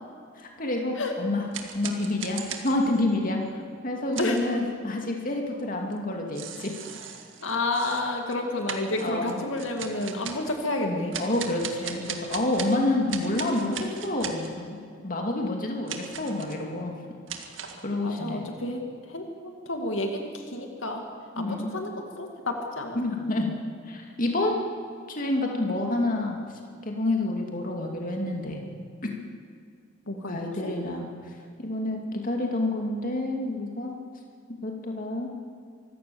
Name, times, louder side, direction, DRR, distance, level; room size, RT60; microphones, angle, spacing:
voice 1, 0.4-1.5 1.7-3.4 3.8-6.7 9.0-9.4 11.2-16.9 17.8-18.5 21.3-21.8 22.9-23.5 23.9-24.6 25.1-26.4 26.8-28.6 29.0-29.1 30.3-31.1 31.6-34.0 34.5-35.3, left 2 dB, 45° left, 1 dB, 2.5 m, -28 dB
sound 1, 1.5-3.1 4.1-4.5 5.9-6.0 6.3-8.4 8.7-10.6 11.1-12.8 13.1-14.5 15.9-16.6 17.3-17.8, right 7 dB, 75° right, 1.9 m, -38 dB
voice 2, 7.4-11.1 12.7-13.2 18.0-18.8 19.1-21.0 21.4-23.0 30.1-30.8, left 2 dB, 85° left, 3 dB, 2.3 m, -30 dB
24.5 x 15.5 x 7.1 m, 2.2 s
head